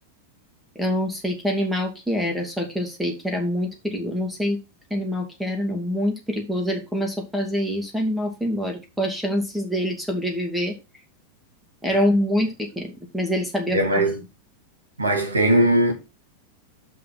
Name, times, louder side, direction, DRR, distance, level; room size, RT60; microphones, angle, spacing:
voice 1, 0.8-4.6 4.9-10.7 11.8-14.0, equal, ahead, 2.4 m, -25 dB
voice 2, 13.7-14.2 15.0-15.9, right 1 dB, 75° right, 2.4 m, -19 dB
6.3 x 5.5 x 6.1 m
figure-of-eight pair, 90°, 0 cm